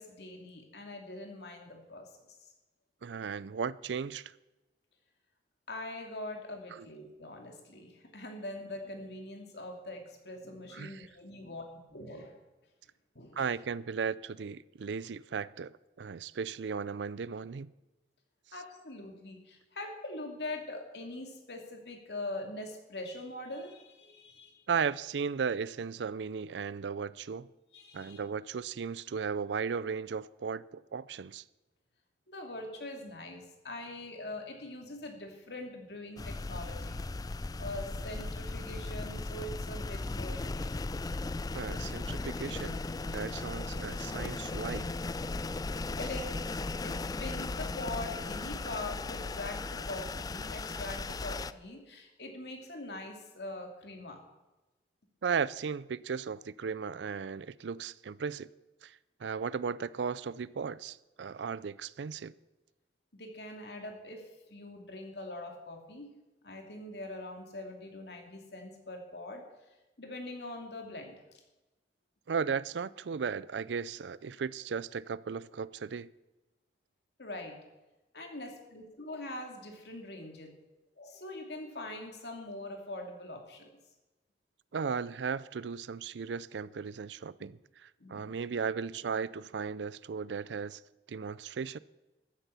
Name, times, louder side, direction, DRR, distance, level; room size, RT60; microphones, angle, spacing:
voice 1, 0.0-2.5 5.7-12.4 13.1-13.6 18.5-24.6 27.7-28.2 32.3-37.0 37.6-40.7 46.0-46.3 46.8-54.2 63.1-66.1 66.4-69.4 70.0-71.2 77.2-77.6 78.1-80.5 81.0-83.7 87.4-87.5 88.0-88.4, left 2 dB, 65° left, 2.7 m, -43 dB
voice 2, 3.0-4.3 6.7-6.9 10.7-11.1 13.4-17.7 24.7-27.5 27.9-31.4 41.5-42.8 43.1-44.9 55.2-58.5 58.8-62.3 72.3-76.1 84.7-90.8 91.1-91.8, right 6 dB, 80° right, 0.4 m, -36 dB
sound 1, 36.2-51.5, left 3 dB, 20° left, 0.3 m, -37 dB
14.0 x 9.8 x 6.9 m
head